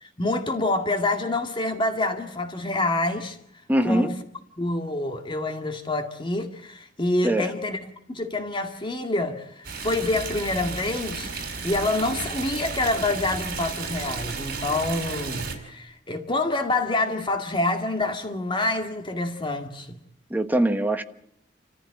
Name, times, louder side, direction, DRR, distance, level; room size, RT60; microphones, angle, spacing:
voice 1, 0.0-3.4 3.8-4.1 4.6-20.0, left 2 dB, 25° left, 2.0 m, -27 dB
voice 2, 3.7-4.1 7.2-7.5 20.3-21.0, right 1 dB, 10° right, 1.3 m, -22 dB
Stream, 9.6-15.5, right 4 dB, 55° right, 4.8 m, -33 dB
28.5 x 15.0 x 8.7 m
head